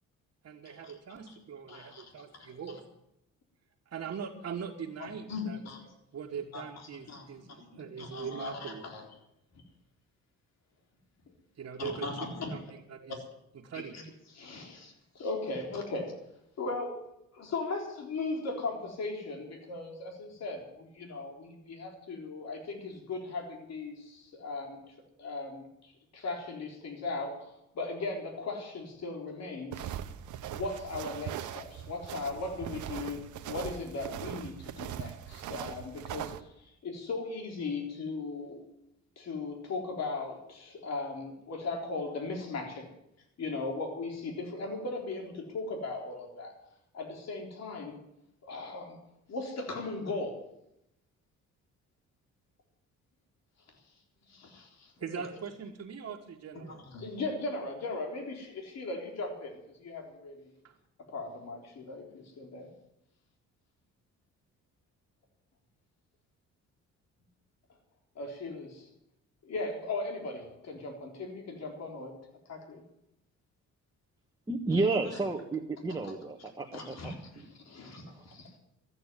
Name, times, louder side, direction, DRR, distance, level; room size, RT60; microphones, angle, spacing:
voice 1, 0.4-2.8 3.9-5.6 6.1-8.8 11.6-13.2 13.5-13.9 55.0-56.8 60.6-60.8, right 7 dB, 50° right, -3 dB, 1.9 m, -41 dB
voice 2, 1.7-2.5 5.0-5.8 6.5-6.6 7.1-9.1 11.8-12.6 13.7-14.0 14.3-16.2 16.6-24.8 25.2-30.0 30.5-38.6 39.2-42.9 43.4-46.5 46.9-48.0 48.4-49.0 49.3-50.4 54.3-55.2 56.6-60.5 61.1-62.7 68.2-68.9 69.4-72.2 72.5-72.8 76.1-76.2 76.7-78.5, left 3 dB, 60° left, 2 dB, 3.9 m, -38 dB
sound 1, 29.7-36.4, right 11 dB, 75° right, 1.0 m, -40 dB
voice 3, 74.5-77.0 78.2-78.3, right 3 dB, 10° right, 1 dB, 1.5 m, -31 dB
14.0 x 9.1 x 9.2 m, 0.83 s
cardioid pair, 90°, 30 cm